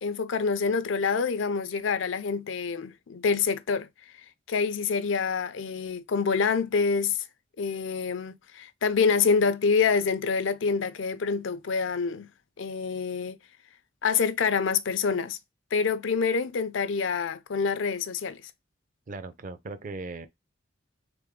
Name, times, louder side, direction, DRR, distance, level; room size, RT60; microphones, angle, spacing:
voice 1, 0.0-3.9 4.5-7.2 7.6-12.3 12.6-13.4 14.0-15.4 15.7-18.4, left 5 dB, 80° left, 0.5 m, -26 dB
voice 2, 19.1-20.3, right 3 dB, 45° right, 0.5 m, -38 dB
3.4 x 3.4 x 3.6 m
head